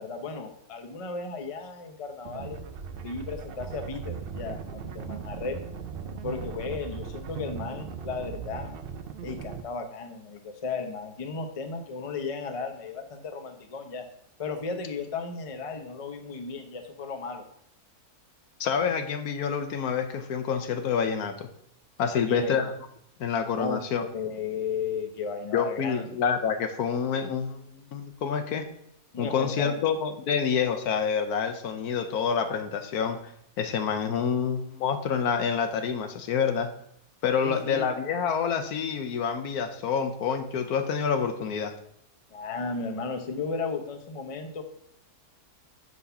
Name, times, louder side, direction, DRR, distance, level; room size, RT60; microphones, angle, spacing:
voice 1, 0.0-2.6 3.0-4.6 4.9-5.6 6.2-8.7 9.2-14.1 14.4-17.5 22.1-22.6 23.5-26.1 29.1-29.9 37.4-37.9 42.3-44.6, left 4 dB, 30° left, 5 dB, 0.6 m, -35 dB
sound 1, 2.3-9.6, right 6 dB, 65° right, 0.6 m, -38 dB
voice 2, 18.6-21.5 22.0-22.7 23.2-24.0 25.5-28.7 29.2-33.3 33.6-36.7 37.2-41.7, left 6 dB, 80° left, 8 dB, 1.3 m, -27 dB
7.2 x 4.1 x 5.6 m, 0.73 s
omnidirectional pair, 1.6 m